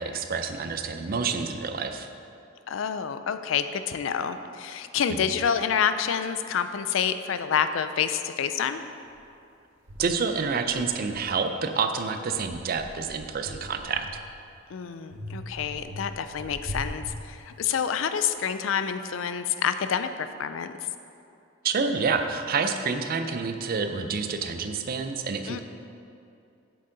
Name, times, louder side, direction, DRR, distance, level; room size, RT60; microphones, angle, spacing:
voice 1, 0.0-2.1 5.1-5.2 10.0-14.1 21.6-25.6, right 5 dB, 50° right, 7 dB, 0.5 m, -28 dB
voice 2, 2.7-8.8 14.7-20.7 25.5-25.6, left 7 dB, 75° left, 10 dB, 0.4 m, -28 dB
sound 1, 9.1-9.2 9.9-11.7 12.2-14.5 15.1-17.9, equal, 80° right, 1.0 m, -41 dB
7.3 x 6.8 x 3.9 m, 2.6 s
head